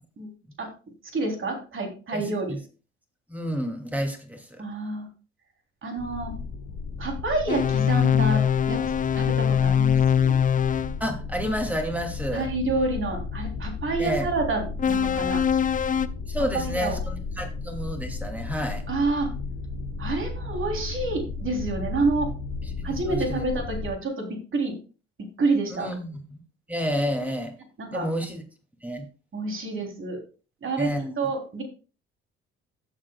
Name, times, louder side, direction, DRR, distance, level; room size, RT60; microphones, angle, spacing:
voice 1, 1.1-2.6 4.6-5.1 5.8-6.3 7.0-8.4 8.7-8.8 9.1-10.3 12.3-15.4 16.5-17.0 18.9-19.3 20.0-22.3 22.8-24.7 25.4-25.9 27.8-28.1 29.3-30.2 30.6-30.9 31.2-31.6, right 3 dB, 35° right, 2 dB, 3.5 m, -28 dB
voice 2, 2.1-2.6 3.3-4.5 11.0-12.5 14.0-14.3 16.3-18.8 22.6-23.5 25.7-26.4 26.7-27.5 27.9-28.4 28.8-29.1 30.8-31.1, equal, 5° right, 3 dB, 2.7 m, -30 dB
sound 1, 6.0-23.9, left 4 dB, 45° left, 1.9 m, -34 dB
sound 2, 7.5-11.0 14.8-16.1, left 8 dB, 25° left, 0.5 m, -22 dB
16.0 x 7.6 x 2.4 m, 0.35 s
figure-of-eight pair, 50°, 33 cm